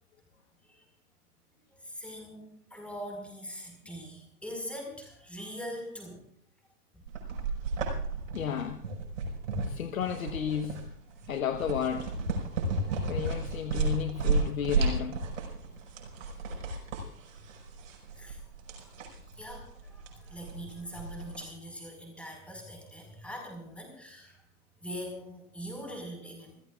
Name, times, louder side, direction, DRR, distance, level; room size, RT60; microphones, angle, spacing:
voice 1, 1.8-6.2 6.9-7.0 7.3-7.5 12.6-13.2 18.1-18.4 18.8-18.9 19.4-24.4 24.8-26.6, equal, 5° left, 1 dB, 5.2 m, -42 dB
sound 1, 7.1-21.4, right 3 dB, 55° right, 5.3 m, -33 dB
voice 2, 8.3-8.9 9.7-10.9 11.3-12.1 13.1-15.2, left 8 dB, 60° left, 8 dB, 1.3 m, -33 dB
29.0 x 15.0 x 2.5 m, 0.67 s
figure-of-eight pair, 120°, 46 cm